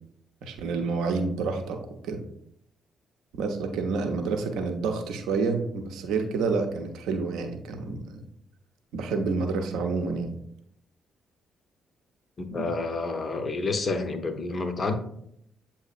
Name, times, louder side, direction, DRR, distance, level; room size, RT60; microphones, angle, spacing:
voice 1, 0.4-2.2 3.3-8.2 8.9-10.3 12.5-12.7, right 4 dB, 65° right, 0.6 m, -29 dB
voice 2, 12.4-14.9, left 3 dB, 40° left, 0.6 m, -29 dB
7.8 x 2.7 x 2.4 m
figure-of-eight pair, 40°, 0 cm